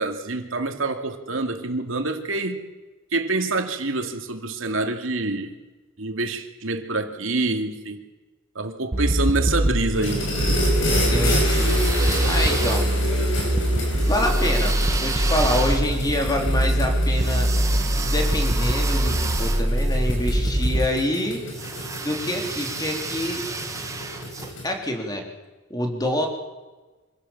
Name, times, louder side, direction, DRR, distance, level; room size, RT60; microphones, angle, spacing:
voice 1, 0.0-2.6 3.1-5.5 6.0-8.0 8.5-10.2, right 2 dB, 80° right, 5 dB, 2.5 m, -26 dB
sound 1, 8.9-20.8, right 1 dB, 30° right, 1.2 m, -23 dB
sound 2, 9.9-24.7, left 1 dB, 70° left, 8.0 m, -30 dB
voice 2, 10.8-12.9 14.1-17.5 18.0-21.4 22.0-23.4 24.6-25.2 25.7-26.3, left 1 dB, 20° left, 2 dB, 3.6 m, -26 dB
sound 3, 11.3-13.2 14.0-20.4 21.5-24.5, right 4 dB, 15° right, 1.6 m, -32 dB
26.0 x 16.5 x 7.3 m, 1.2 s
head